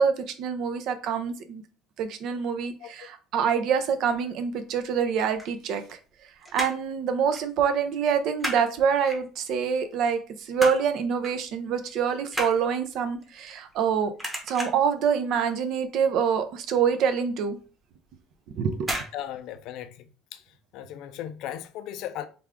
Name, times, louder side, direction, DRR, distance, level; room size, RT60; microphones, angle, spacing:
voice 1, 0.0-1.6 2.0-6.0 6.5-10.2 10.5-14.1 14.5-17.6 18.6-18.9, right 7 dB, 60° right, 0.5 m, -26 dB
sound 1, 5.2-6.2 6.4-6.9 7.3-7.5 7.8-8.6 9.1-9.6 10.1-10.9 11.2-11.5 11.8-13.9 14.2-14.9 15.4-15.7 16.0-16.1 16.4-16.5 17.0-17.1 17.9-18.2 18.8-19.1 19.4-19.5, equal, 10° right, 1.0 m, -33 dB
voice 2, 19.1-20.4 20.7-22.3, left 11 dB, 65° left, 0.4 m, -37 dB
3.4 x 2.3 x 3.5 m
cardioid pair, 135°, 0 cm